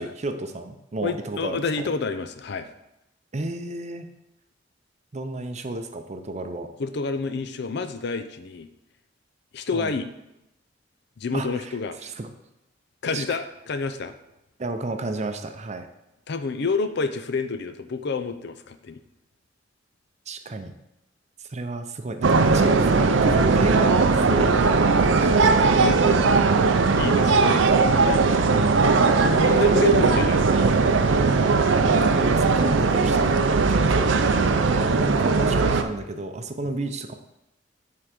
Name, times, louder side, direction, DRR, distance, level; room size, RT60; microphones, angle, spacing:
voice 1, 0.0-1.8 3.3-4.1 5.1-6.7 9.7-9.9 11.3-12.3 13.1-13.2 14.6-15.9 20.3-20.8 21.4-24.0 24.2-25.6 28.4-29.0 31.9-34.1 34.7-37.1, right 2 dB, 40° right, 7 dB, 0.6 m, -32 dB
voice 2, 1.0-2.7 6.8-8.7 9.5-10.1 11.2-12.0 13.0-14.1 16.3-19.0 24.3-24.4 25.8-27.6 29.3-30.7 33.8-33.9 34.3-34.5, left 4 dB, 65° left, 10 dB, 0.5 m, -29 dB
sound 1, 22.2-35.8, right 4 dB, 80° right, 0.5 m, -19 dB
7.9 x 3.8 x 5.9 m, 0.89 s
head